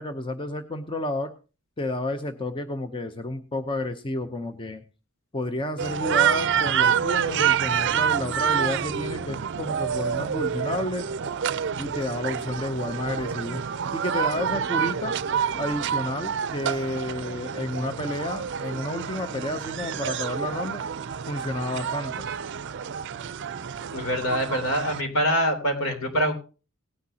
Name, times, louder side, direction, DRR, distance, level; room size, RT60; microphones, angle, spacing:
voice 1, 0.0-1.3 1.8-4.8 5.3-11.1 11.8-13.6 13.9-15.2 15.5-20.8 21.3-22.3, left 1 dB, 25° left, 7 dB, 0.7 m, -31 dB
sound 1, 5.8-25.0, right 8 dB, 55° right, 0.5 m, -28 dB
voice 2, 23.9-26.3, equal, 70° left, 5 dB, 3.4 m, -24 dB
18.0 x 10.0 x 2.8 m, 0.33 s
head